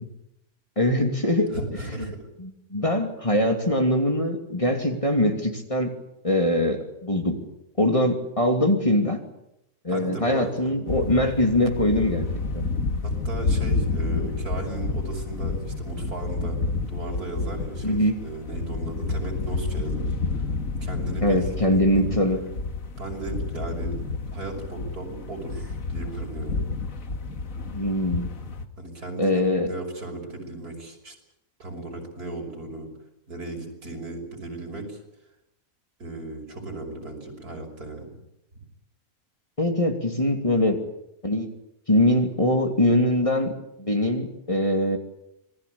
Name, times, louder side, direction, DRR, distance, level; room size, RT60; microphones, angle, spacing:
voice 1, 0.8-1.5 2.0-2.1 2.4-5.9 6.2-7.4 7.8-9.2 9.8-12.3 12.5-12.7 17.8-18.2 21.2-22.4 27.7-28.3 29.2-29.7 39.6-40.8 41.2-41.5 41.9-43.5 43.8-45.0, left 1 dB, 20° left, 4 dB, 2.8 m, -22 dB
voice 2, 1.5-2.2 9.9-10.7 13.0-16.6 16.9-20.1 20.3-20.4 20.8-22.2 22.9-24.0 24.3-26.6 28.8-31.1 31.6-32.9 33.3-35.0 36.0-38.1, right 2 dB, 85° right, 2 dB, 6.6 m, -36 dB
sound 1, 10.9-28.7, left 3 dB, 65° left, 2.1 m, -29 dB
26.5 x 20.0 x 8.5 m, 0.85 s
omnidirectional pair, 1.6 m